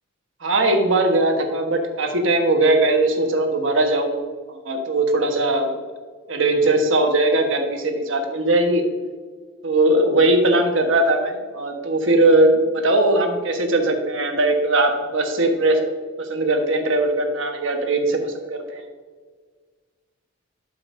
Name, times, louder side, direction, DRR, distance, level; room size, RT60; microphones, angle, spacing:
voice 1, 0.4-4.2 4.5-5.8 6.3-8.8 9.6-15.8 16.2-18.8, right 2 dB, 70° right, 3 dB, 1.2 m, -19 dB
12.0 x 5.6 x 2.6 m, 1.5 s
head